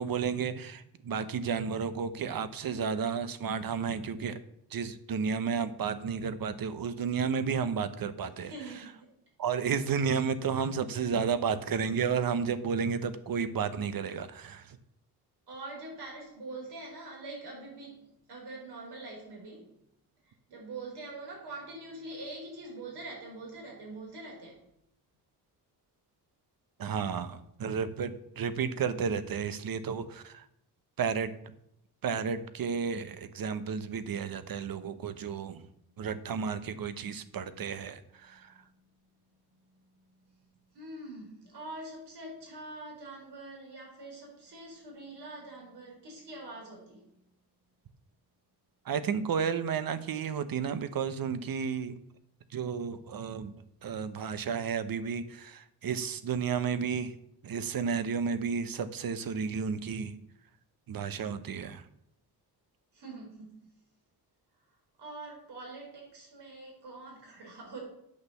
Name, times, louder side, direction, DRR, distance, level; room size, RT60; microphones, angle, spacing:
voice 1, 0.0-4.4 4.7-8.8 9.4-14.8 26.8-30.5 31.0-31.5 32.0-35.6 36.0-38.5 48.8-52.0 52.5-53.5 53.8-57.1 57.4-60.1 60.9-61.8, right 6 dB, 60° right, 12 dB, 0.9 m, -32 dB
voice 2, 8.4-9.1 15.5-19.7 20.5-24.6 40.7-47.1 62.9-63.7 65.0-67.8, right 2 dB, 80° right, -1 dB, 4.9 m, -44 dB
8.6 x 6.3 x 6.9 m, 0.75 s
cardioid pair, 110°, 39 cm